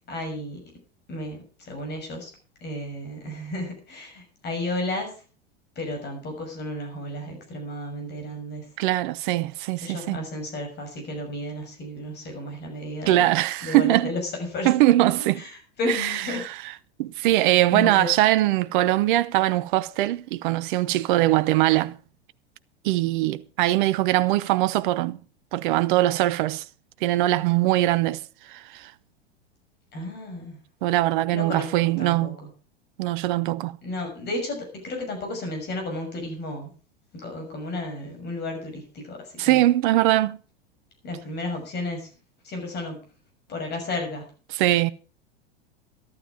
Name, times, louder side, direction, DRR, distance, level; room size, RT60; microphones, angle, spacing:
voice 1, 0.1-0.6 1.1-2.3 2.6-5.2 5.7-8.7 9.8-13.3 13.6-14.7 15.4-16.5 17.3-18.1 29.9-30.6 31.3-32.5 33.8-36.7 37.1-39.6 41.0-42.1 42.4-43.0 43.5-44.3, left 1 dB, 30° left, 6.3 m, -33 dB
voice 2, 8.8-10.2 13.1-14.1 14.6-15.4 17.0-22.0 22.8-25.2 25.5-26.6 27.0-28.2 28.5-28.9 30.8-32.4 33.0-33.7 39.4-40.4 44.5-44.9, right 16 dB, 50° right, 0.9 m, -21 dB
13.5 x 12.5 x 5.0 m
figure-of-eight pair, 90°, 31 cm